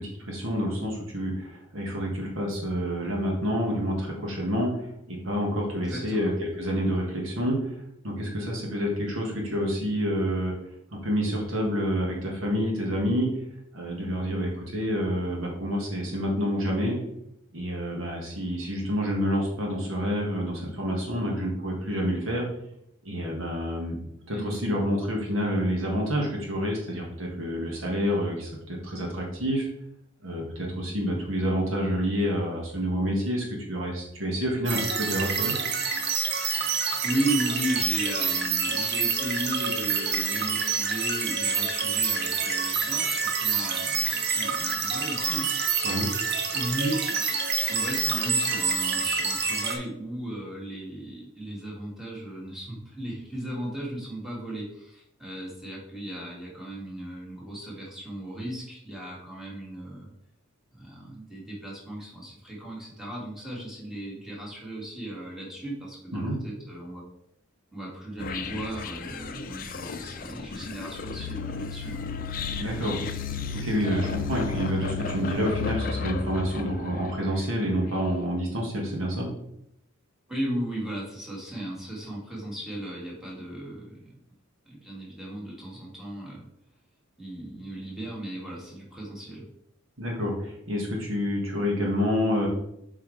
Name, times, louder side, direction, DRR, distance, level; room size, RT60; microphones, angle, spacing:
voice 1, 0.0-7.7 8.0-10.5 10.9-13.3 13.7-17.0 17.5-22.5 23.0-24.0 24.2-29.7 30.2-35.5 45.8-46.1 66.1-66.4 72.6-73.0 73.6-79.3 90.0-92.5, equal, 70° right, -1 dB, 1.6 m, -28 dB
voice 2, 5.9-6.4 24.3-24.6 36.6-45.5 46.5-60.1 60.7-67.0 67.7-72.0 80.3-84.1 84.7-86.5 87.2-89.5, right 1 dB, ahead, -5 dB, 2.0 m, -36 dB
sound 1, 34.7-49.8, right 5 dB, 55° right, 0.8 m, -27 dB
sound 2, 68.2-77.4, left 5 dB, 45° left, 0.5 m, -34 dB
7.4 x 4.6 x 3.3 m, 0.76 s
head